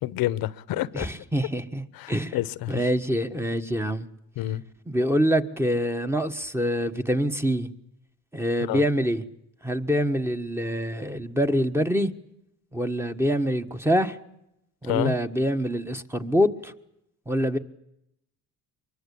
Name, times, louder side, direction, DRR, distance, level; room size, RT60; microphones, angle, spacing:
voice 1, 0.0-1.1 2.0-2.8 4.4-4.6 8.7-8.8 14.9-15.1, left 15 dB, 80° left, 1.1 m, -28 dB
voice 2, 0.9-2.4 2.7-4.1 4.9-7.7 8.3-9.2 9.6-12.1 12.7-14.2 14.8-16.7 17.3-17.6, equal, 5° right, 1.5 m, -25 dB
24.0 x 22.5 x 8.5 m
cardioid pair, 105°, 35 cm